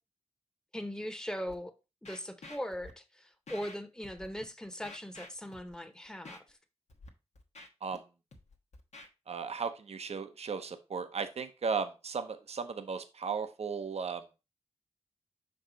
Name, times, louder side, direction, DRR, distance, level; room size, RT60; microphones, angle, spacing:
voice 1, 0.7-1.7 2.0-6.6, equal, 5° left, 1.0 m, -40 dB
Scratching (performance technique), 1.5-1.6 2.0-2.9 3.5-3.8 4.0-4.4 4.8-5.8 6.2-6.4 6.9-7.1 7.4-8.0 8.3-9.1, left 2 dB, 85° left, 1.1 m, -50 dB
voice 2, 9.3-14.2, right 5 dB, 65° right, 0.7 m, -36 dB
5.9 x 4.7 x 3.9 m
wide cardioid pair, 65°, 11 cm